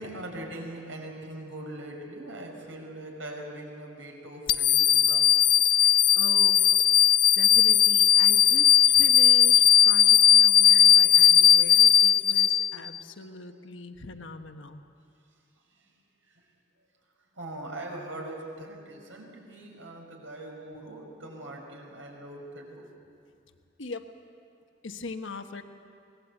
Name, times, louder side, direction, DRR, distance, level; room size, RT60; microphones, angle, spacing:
voice 1, 0.0-5.3 15.8-15.9 17.3-22.9, right 1 dB, 85° right, 0 dB, 5.5 m, -41 dB
sound 1, 4.5-13.0, left 10 dB, 50° left, 0.6 m, -18 dB
voice 2, 5.8-6.8 7.4-14.8 23.8-24.1 24.8-25.6, left 3 dB, 80° left, 6 dB, 1.2 m, -41 dB
24.5 x 19.5 x 8.3 m, 2.4 s
head